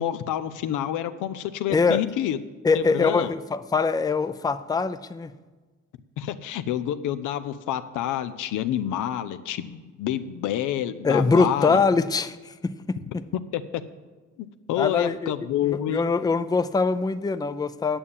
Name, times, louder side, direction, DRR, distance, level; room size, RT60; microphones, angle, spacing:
voice 1, 0.0-2.4 2.7-3.3 6.2-11.8 13.5-13.8 14.7-16.0, left 11 dB, 90° left, 11 dB, 0.7 m, -28 dB
voice 2, 1.7-2.0 2.6-5.3 11.0-13.2 14.8-15.3 15.6-18.0, left 4 dB, 15° left, 12 dB, 0.5 m, -23 dB
8.8 x 7.2 x 8.7 m, 1.3 s
cardioid pair, 90°, 30 cm